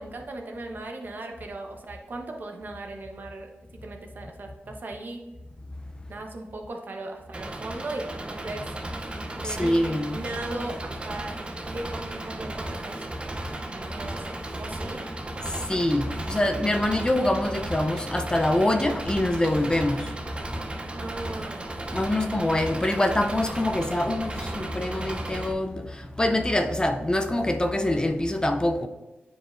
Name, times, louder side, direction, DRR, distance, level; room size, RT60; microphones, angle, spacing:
voice 1, 0.0-3.5 3.8-5.2 6.1-8.6 9.4-11.3 11.6-13.1 13.7-15.0 20.9-21.7, right 2 dB, 50° right, 0.9 m, -37 dB
Engine, 7.3-25.5, right 1 dB, 25° right, 0.6 m, -35 dB
voice 2, 9.4-10.2 15.7-20.1 21.9-25.8 26.2-28.9, left 1 dB, 20° left, 0.4 m, -25 dB
8.9 x 4.8 x 2.5 m
cardioid pair, 75°, 4 cm